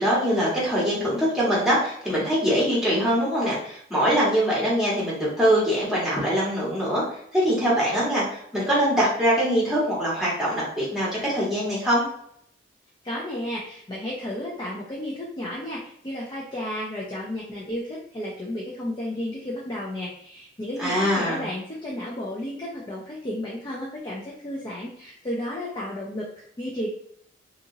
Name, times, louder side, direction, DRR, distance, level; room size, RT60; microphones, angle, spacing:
voice 1, 0.0-7.0 7.3-12.1 20.8-21.4, equal, ahead, -7 dB, 1.2 m, -23 dB
voice 2, 13.0-26.9, left 1 dB, 25° left, -4 dB, 0.5 m, -33 dB
2.8 x 2.6 x 2.6 m, 0.68 s
head